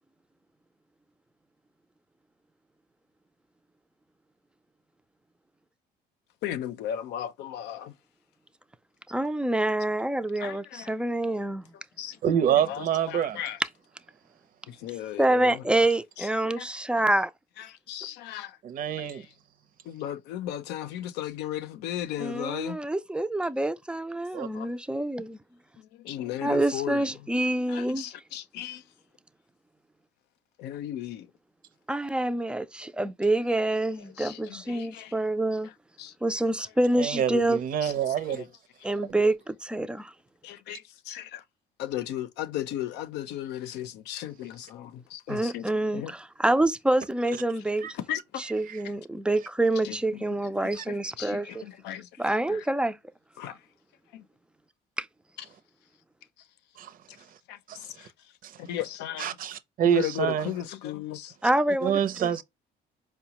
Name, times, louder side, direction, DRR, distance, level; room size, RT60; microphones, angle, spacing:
voice 1, 6.4-7.9 10.4-10.9 12.0-12.2 12.6-13.6 14.7-15.6 16.2-16.7 17.0-17.1 17.6-18.6 19.0-19.2 19.9-22.8 24.5-24.7 26.0-27.1 27.7-28.8 30.6-31.3 34.2-35.1 36.0-36.1 37.8-38.0 38.3-38.5 40.4-41.4 41.8-45.6 45.9-46.1 47.9-48.2 49.8-50.2 50.9-52.1 52.5-52.6 53.4-53.5 54.1-54.2 55.4-55.5 57.5-57.6 58.0-58.1 58.6-59.4 59.9-61.3, left 12 dB, 85° left, 0.6 m, -35 dB
voice 2, 9.1-11.7 15.2-17.3 22.2-25.4 26.4-28.0 31.9-35.7 36.2-37.6 38.8-40.1 45.3-48.0 48.4-51.6 52.2-53.0 55.0-55.1 61.4-62.4, right 1 dB, 5° right, 0.4 m, -27 dB
voice 3, 12.2-13.4 18.6-19.3 24.3-24.5 37.0-38.5 39.1-39.2 47.8-47.9 48.4-48.8 50.8-50.9 56.8-57.0 57.7-58.1 58.4-58.6 59.2-60.6 61.8-62.4, right 9 dB, 55° right, 0.6 m, -27 dB
4.8 x 2.2 x 2.9 m
cardioid pair, 110°, 17 cm